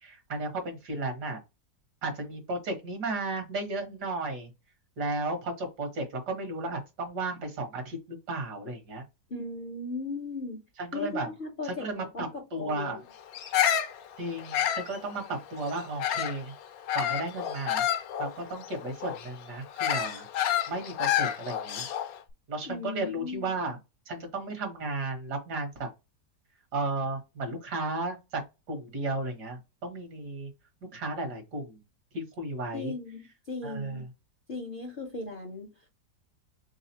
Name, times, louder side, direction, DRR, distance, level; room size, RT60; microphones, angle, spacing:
voice 1, 0.0-1.4 2.0-4.5 5.0-9.0 10.8-11.3 11.6-13.0 14.2-16.5 16.9-17.9 18.2-20.3 20.7-21.9 22.5-23.8 24.1-25.9 26.7-28.4 28.7-30.5 30.9-31.8 32.1-32.9 33.6-34.1, right 2 dB, 70° right, 2.0 m, -34 dB
voice 2, 9.3-10.6 10.9-13.0 22.7-23.5 32.7-34.0 34.5-35.7, left 3 dB, 45° left, 0.7 m, -37 dB
Bird vocalization bird call bird song, 13.3-16.4 16.9-22.2, left 10 dB, 65° left, 1.0 m, -29 dB
4.0 x 3.6 x 2.8 m
omnidirectional pair, 1.9 m